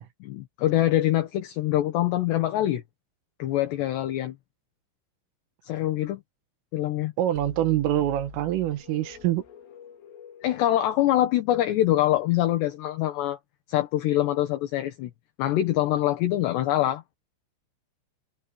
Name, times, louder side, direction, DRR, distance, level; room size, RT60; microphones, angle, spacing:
voice 1, 0.2-2.8 3.4-4.4 5.6-6.2 6.7-7.1 10.4-13.4 13.7-15.1 15.4-17.2, left 13 dB, 70° left, 3.3 m, -24 dB
voice 2, 7.2-9.4, right 13 dB, 90° right, 4.3 m, -25 dB
sound 1, 7.4-12.1, left 7 dB, 85° left, 5.8 m, -47 dB
omnidirectional pair, 5.6 m